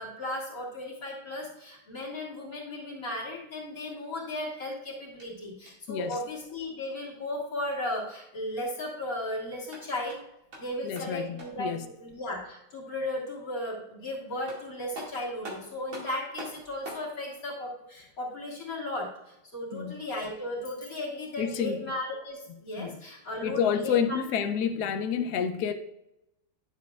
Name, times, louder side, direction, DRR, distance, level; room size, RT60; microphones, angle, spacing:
voice 1, 0.0-10.2 10.6-24.2, left 1 dB, 50° left, 2.2 m, -35 dB
sound 1, 5.1-6.5 9.5-11.7 14.0-14.1 14.5-17.1, right 1 dB, 90° right, 2.8 m, -45 dB
voice 2, 5.9-6.2 10.8-11.8 19.7-19.9 21.4-21.8 22.8-23.0 23.4-25.7, left 7 dB, 70° left, 1.0 m, -29 dB
10.0 x 7.1 x 2.3 m
omnidirectional pair, 2.1 m